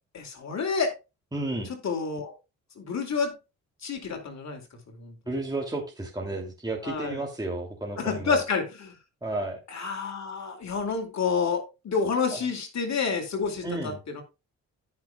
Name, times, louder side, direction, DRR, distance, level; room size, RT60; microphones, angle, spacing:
voice 1, 0.1-0.9 1.8-2.3 2.8-3.4 3.8-4.6 5.0-5.2 6.8-7.2 8.0-9.0 9.7-14.2, left 5 dB, 50° left, 4 dB, 2.6 m, -29 dB
voice 2, 1.3-1.7 5.3-8.4 9.2-9.6 12.3-12.4 13.6-14.0, right 2 dB, 10° right, -1 dB, 2.7 m, -32 dB
16.5 x 5.9 x 2.3 m, 0.27 s
supercardioid pair, 65°, 34 cm